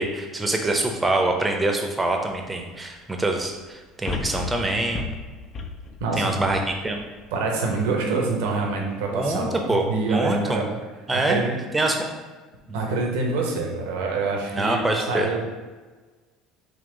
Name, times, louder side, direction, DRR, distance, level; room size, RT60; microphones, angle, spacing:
voice 1, 0.0-5.0 6.2-7.0 9.1-10.6 11.1-11.4 11.7-12.1 12.7-12.8 14.5-15.3, right 2 dB, 15° right, 3 dB, 0.7 m, -25 dB
sound 1, 2.3-2.4 4.0-7.4 7.9-8.0, left 4 dB, 40° left, 0.5 m, -34 dB
voice 2, 6.0-6.3 7.3-10.7 11.1-11.5 12.7-15.4, right 3 dB, 80° right, 1 dB, 0.8 m, -26 dB
3.8 x 2.7 x 3.8 m, 1.3 s
supercardioid pair, 85°, 0 cm